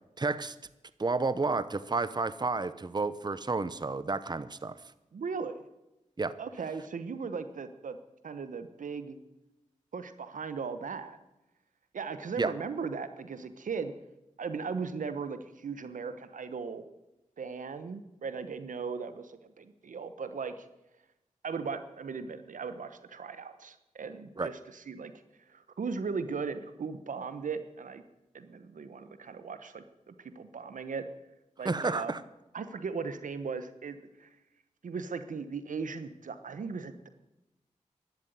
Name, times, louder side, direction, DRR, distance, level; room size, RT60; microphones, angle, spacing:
voice 1, 0.2-0.6 1.0-4.8 6.2-6.3 12.4-12.5 24.4-24.5 31.6-32.2, right 3 dB, 35° right, 15 dB, 0.8 m, -31 dB
voice 2, 5.1-5.6 6.4-8.0 8.2-9.2 9.9-11.2 11.9-13.9 14.4-16.8 17.4-20.7 21.4-25.1 25.5-28.0 28.3-31.0 31.6-32.2 32.5-34.3 34.8-37.1, right 5 dB, 85° right, 11 dB, 1.1 m, -38 dB
12.0 x 12.0 x 9.4 m, 0.95 s
cardioid pair, 45°, 13 cm